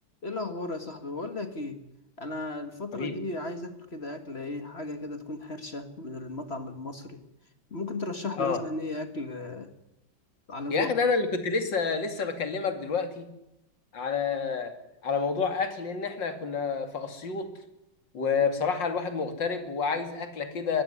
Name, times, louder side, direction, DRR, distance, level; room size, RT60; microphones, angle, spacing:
voice 1, 0.2-1.8 2.2-7.2 7.7-9.7 10.5-10.9, left 2 dB, 35° left, 9 dB, 1.8 m, -35 dB
voice 2, 10.7-13.3 13.9-14.8 15.0-17.5 18.1-20.8, left 5 dB, 70° left, 8 dB, 3.1 m, -28 dB
22.5 x 15.0 x 9.7 m, 0.88 s
omnidirectional pair, 2.1 m